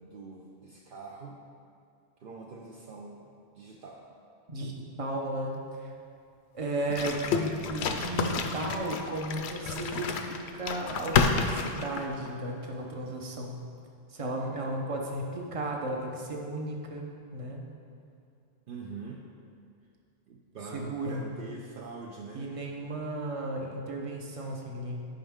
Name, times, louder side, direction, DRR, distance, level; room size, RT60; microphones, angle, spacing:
voice 1, 0.0-1.4 2.2-4.1 18.7-19.2 20.3-22.6, right 4 dB, 60° right, -1 dB, 0.7 m, -44 dB
voice 2, 5.0-5.9 6.5-13.6 14.1-17.1 17.3-17.6 20.7-21.3 22.3-25.1, right 1 dB, 35° right, 0 dB, 0.9 m, -34 dB
sound 1, 6.9-12.3, left 5 dB, 80° left, 0.9 m, -30 dB
10.5 x 5.2 x 3.6 m, 2.4 s
omnidirectional pair, 1.1 m